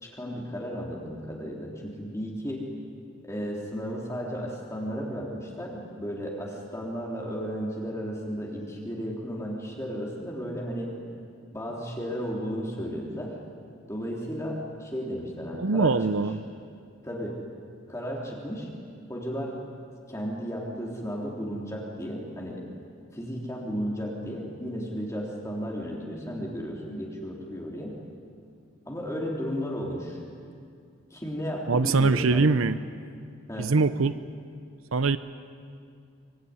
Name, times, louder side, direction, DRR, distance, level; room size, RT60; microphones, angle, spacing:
voice 1, 0.0-2.6 3.2-10.9 11.5-13.4 13.9-16.0 17.0-17.4 17.9-18.7 19.1-19.6 20.1-22.7 23.1-28.0 28.9-30.2 31.1-32.5 33.5-33.7, equal, 15° left, -2 dB, 3.5 m, -34 dB
voice 2, 15.5-16.4 31.7-32.8 33.6-34.2 34.9-35.2, right 4 dB, 80° right, 13 dB, 0.7 m, -23 dB
24.5 x 24.5 x 9.8 m, 2.3 s
head